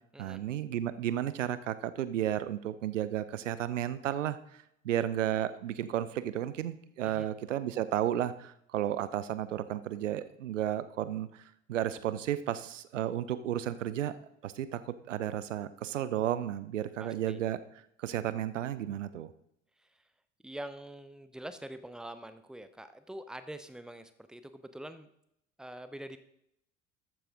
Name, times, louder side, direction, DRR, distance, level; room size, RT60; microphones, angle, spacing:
voice 1, 0.2-4.4 4.8-11.3 11.7-14.1 14.4-17.6 18.0-19.3, right 11 dB, 75° right, 14 dB, 0.8 m, -33 dB
voice 2, 17.0-17.4 19.8-20.0 20.4-25.1 25.6-26.2, right 1 dB, ahead, 11 dB, 0.9 m, -45 dB
14.0 x 9.2 x 3.8 m, 0.76 s
figure-of-eight pair, 60°, 38 cm